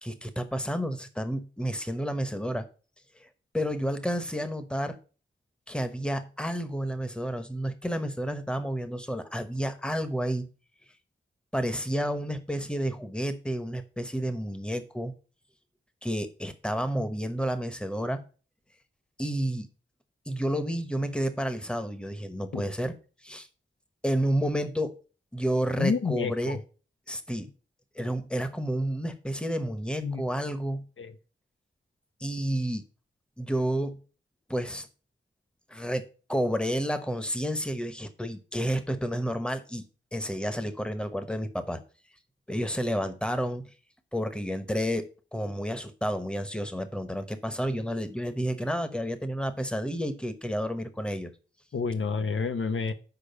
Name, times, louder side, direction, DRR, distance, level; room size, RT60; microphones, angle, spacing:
voice 1, 0.0-2.7 3.2-3.3 3.5-5.0 5.7-10.5 11.5-15.1 16.0-18.2 19.2-19.7 20.3-22.9 23.2-23.5 24.0-24.9 25.3-26.6 27.1-27.5 27.9-30.8 32.2-32.8 33.4-34.0 34.5-34.9 35.7-36.0 36.3-39.8 40.1-41.8 42.5-43.6 44.1-45.1 45.3-51.3, equal, 5° left, 10 dB, 1.0 m, -30 dB
voice 2, 25.8-26.6 30.0-30.2 31.0-31.1 51.7-52.9, left 5 dB, 75° left, 9 dB, 0.8 m, -29 dB
6.9 x 4.9 x 6.8 m, 0.36 s
wide cardioid pair, 85°, 21 cm